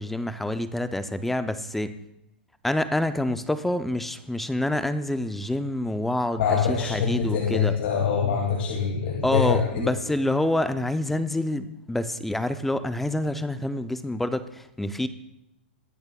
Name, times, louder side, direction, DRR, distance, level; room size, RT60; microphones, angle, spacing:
voice 1, 0.0-2.0 2.6-7.8 9.2-15.1, left 1 dB, 5° left, 12 dB, 0.4 m, -27 dB
voice 2, 6.4-9.9, left 6 dB, 70° left, -2 dB, 2.2 m, -24 dB
20.5 x 7.0 x 2.2 m, 0.85 s
hypercardioid pair, 145°, 6 cm